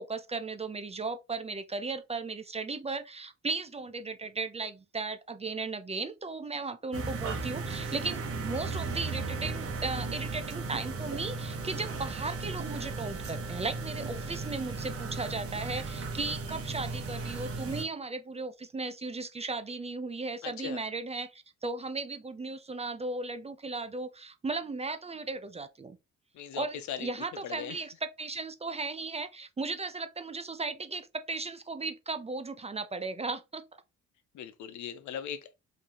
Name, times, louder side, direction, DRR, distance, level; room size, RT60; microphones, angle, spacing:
voice 1, 0.0-26.0 26.5-33.6, right 3 dB, 20° right, 0.5 m, -36 dB
sound 1, 6.9-17.8, right 3 dB, 50° right, 1.0 m, -36 dB
voice 2, 20.4-20.8 26.3-27.1 27.4-27.8 34.3-35.5, left 8 dB, 70° left, 0.7 m, -39 dB
3.8 x 2.7 x 3.0 m
cardioid pair, 90°, 30 cm